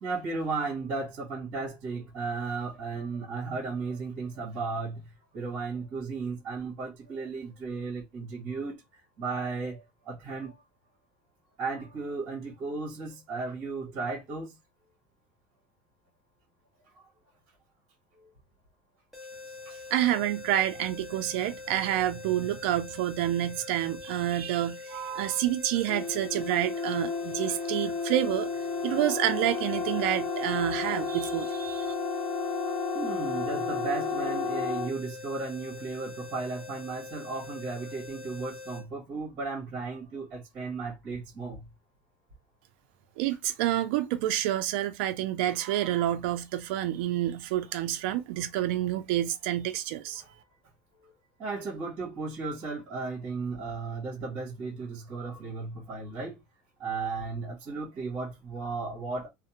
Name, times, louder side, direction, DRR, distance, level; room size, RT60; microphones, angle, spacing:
voice 1, 0.0-8.8 9.2-10.5 11.6-14.6 18.2-18.3 32.9-41.7 50.2-50.3 51.0-51.1 51.4-56.4 56.8-59.3, right 4 dB, 45° right, 1.1 m, -35 dB
sound 1, 19.1-38.8, left 4 dB, ahead, 1.0 m, -44 dB
voice 2, 19.9-28.5 28.8-31.9 43.2-50.2, right 13 dB, 75° right, 0.4 m, -28 dB
sound 2, 25.9-35.0, left 4 dB, 30° left, 0.5 m, -32 dB
2.5 x 2.0 x 2.8 m
cardioid pair, 160°, 6 cm